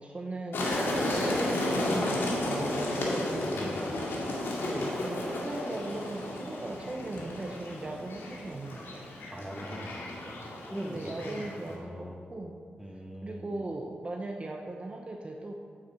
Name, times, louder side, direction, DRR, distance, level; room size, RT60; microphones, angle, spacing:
voice 1, 0.0-3.6 4.6-9.2 10.8-12.6 13.2-15.5, right 2 dB, 30° right, 1 dB, 0.8 m, -39 dB
sound 1, 0.5-11.7, left 1 dB, 80° left, 2.2 m, -33 dB
voice 2, 3.6-4.0 9.3-12.4 12.8-13.5, equal, 5° right, 1 dB, 1.6 m, -42 dB
8.6 x 6.9 x 7.7 m, 2.2 s
cardioid pair, 85°, 4 cm